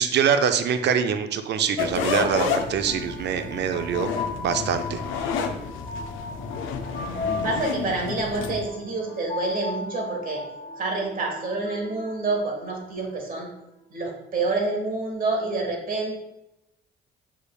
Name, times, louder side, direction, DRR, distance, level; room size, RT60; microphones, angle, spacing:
voice 1, 0.0-4.1 4.4-5.3, right 7 dB, 60° right, 8 dB, 0.4 m, -24 dB
sound 1, 1.8-8.7, left 6 dB, 85° left, 0.4 m, -30 dB
sound 2, 2.2-13.1, left 3 dB, 35° left, 1.1 m, -37 dB
voice 2, 7.4-10.4 10.8-13.5 13.9-16.1, right 3 dB, 45° right, 0 dB, 1.3 m, -28 dB
6.3 x 3.3 x 2.3 m, 0.88 s
cardioid pair, 90°, 20 cm